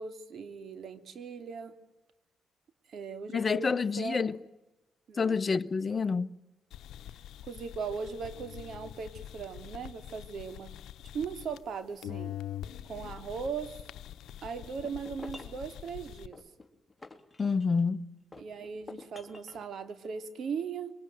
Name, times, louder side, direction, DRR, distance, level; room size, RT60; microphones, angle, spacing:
voice 1, 0.0-1.7 2.9-4.3 5.1-5.4 7.4-10.7 11.1-12.3 12.9-13.8 14.4-16.4 18.4-20.9, right 6 dB, 60° right, 2.8 m, -38 dB
voice 2, 3.3-4.4 5.2-6.3 17.4-18.1, left 5 dB, 30° left, 1.1 m, -28 dB
sound 1, 6.7-11.8 12.0-16.3, left 11 dB, 80° left, 0.9 m, -44 dB
sound 2, 14.6-15.6 16.3-17.9 18.3-19.7, left 3 dB, 15° left, 3.3 m, -49 dB
26.5 x 23.5 x 9.3 m
cardioid pair, 90°, 0 cm